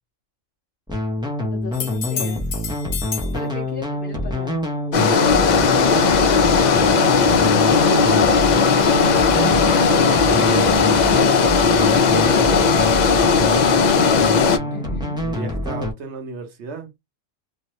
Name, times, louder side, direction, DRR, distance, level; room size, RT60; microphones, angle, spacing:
sound 1, 0.9-15.9, left 1 dB, 5° right, 0.5 m, -26 dB
voice 1, 1.5-2.4 3.3-4.6 5.5-5.6 5.9-6.3 7.4-8.3 14.7-15.2, left 3 dB, 50° left, 1.0 m, -34 dB
sound 2, 1.7-3.4 7.1-7.2, left 7 dB, 85° left, 1.2 m, -30 dB
sound 3, 4.9-14.6, left 5 dB, 70° left, 0.4 m, -16 dB
voice 2, 5.1-6.8 7.4-8.0 8.5-9.7 10.2-10.8 11.7-13.7 15.2-16.9, right 5 dB, 65° right, 1.0 m, -34 dB
2.9 x 2.1 x 2.9 m
omnidirectional pair, 1.3 m